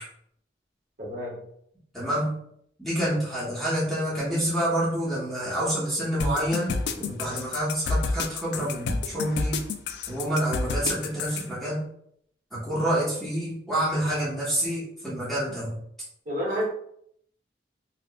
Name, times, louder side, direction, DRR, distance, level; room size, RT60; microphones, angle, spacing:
voice 1, 1.0-1.4 16.2-16.6, equal, 50° right, -6 dB, 1.4 m, -29 dB
voice 2, 1.9-2.4 2.8-9.6 10.1-11.8 12.5-15.7, right 1 dB, ahead, -9 dB, 0.9 m, -28 dB
sound 1, 6.2-11.4, left 4 dB, 70° left, 0.3 m, -29 dB
4.6 x 2.3 x 2.2 m, 0.69 s
head